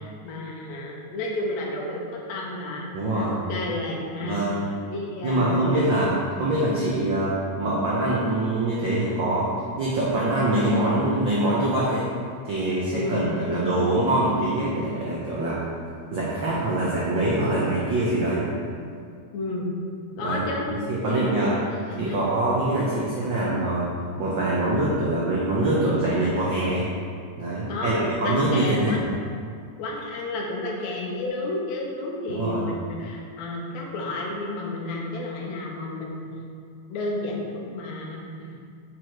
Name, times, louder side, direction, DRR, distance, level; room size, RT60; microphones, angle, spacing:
voice 1, 0.0-4.5 4.9-6.0 6.3-6.4 12.9-13.2 19.3-19.6 20.2-22.2 27.7-29.0 29.8-36.3 36.9-38.6, left 2 dB, 75° left, -2 dB, 2.1 m, -31 dB
voice 2, 2.9-3.3 4.2-4.6 5.2-6.1 6.4-9.5 9.8-12.1 12.4-15.6 16.1-18.5 20.2-20.4 20.9-21.6 22.0-23.9 24.2-26.9 27.4-29.0 32.3-32.6, right 1 dB, 70° right, -7 dB, 1.1 m, -24 dB
6.0 x 4.7 x 4.5 m, 2.2 s
omnidirectional pair, 3.4 m